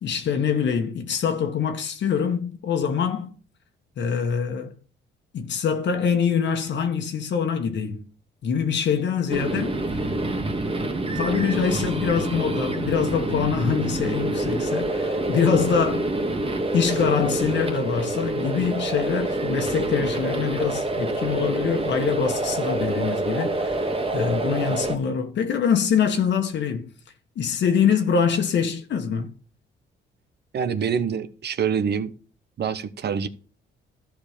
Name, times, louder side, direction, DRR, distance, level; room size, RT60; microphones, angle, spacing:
voice 1, 0.0-3.3 4.0-4.7 5.3-8.0 8.4-9.8 11.1-16.1 16.7-26.9 27.3-29.3, left 7 dB, 65° left, 1.5 m, -24 dB
sound 1, 9.3-25.0, right 2 dB, 30° right, 1.7 m, -26 dB
voice 2, 30.5-32.1 32.6-33.3, right 7 dB, 55° right, 1.1 m, -25 dB
13.0 x 5.1 x 5.1 m
cardioid pair, 90°, 20 cm